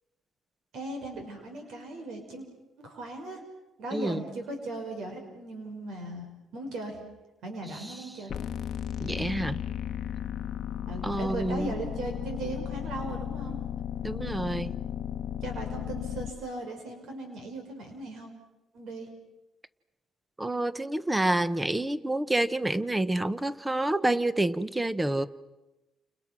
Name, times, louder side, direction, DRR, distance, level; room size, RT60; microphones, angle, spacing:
voice 1, 0.7-2.5 2.8-3.4 3.8-6.3 6.5-7.0 7.4-8.3 10.9-13.6 15.4-18.3 18.7-19.1, right 2 dB, 75° right, 4 dB, 5.9 m, -38 dB
voice 2, 3.9-4.2 7.7-8.0 9.0-9.6 11.0-11.8 14.0-14.7 20.4-25.3, right 1 dB, 10° right, 15 dB, 1.0 m, -28 dB
sound 1, 8.3-16.3, left 9 dB, 55° left, 1.0 m, -35 dB
30.0 x 29.0 x 6.2 m, 0.99 s
cardioid pair, 130°, 0 cm